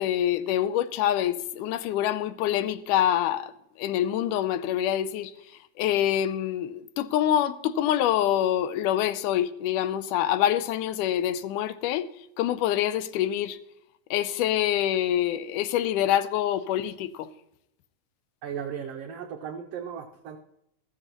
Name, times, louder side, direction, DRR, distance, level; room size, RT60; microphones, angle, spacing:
voice 1, 0.0-3.5 3.8-5.3 5.8-12.1 12.4-13.6 14.1-17.3, left 11 dB, 90° left, 2.1 m, -26 dB
voice 2, 18.4-20.4, right 8 dB, 85° right, 1.3 m, -36 dB
14.5 x 13.5 x 3.0 m
omnidirectional pair, 3.6 m